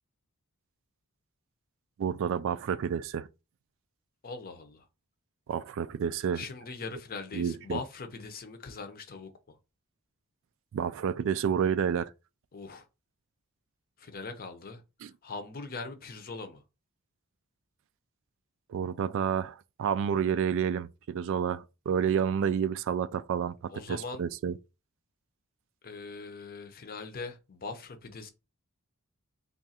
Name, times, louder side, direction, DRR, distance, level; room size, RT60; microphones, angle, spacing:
voice 1, 2.0-3.3 5.5-6.4 7.3-7.8 10.7-12.1 15.0-15.1 18.7-24.5, right 7 dB, 60° right, 0.3 m, -29 dB
voice 2, 4.2-4.9 6.3-9.6 12.5-12.9 14.0-14.8 15.2-16.6 23.7-24.2 25.8-28.3, left 4 dB, 40° left, 0.6 m, -41 dB
3.5 x 2.4 x 4.1 m
head